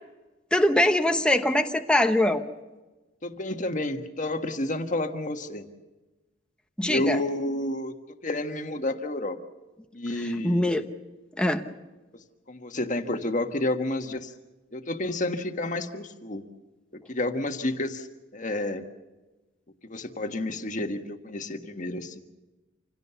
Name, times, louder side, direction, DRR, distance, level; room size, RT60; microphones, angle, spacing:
voice 1, 0.5-2.4 6.8-7.2 10.4-10.8 11.4-11.6, left 1 dB, 5° left, 5 dB, 1.0 m, -22 dB
voice 2, 3.2-5.6 6.8-7.9 8.2-9.4 9.9-10.7 12.5-14.3 14.7-16.4 17.1-18.1 18.3-18.8 19.8-22.2, left 1 dB, 40° left, 6 dB, 1.5 m, -30 dB
27.0 x 17.0 x 6.9 m, 1.2 s
head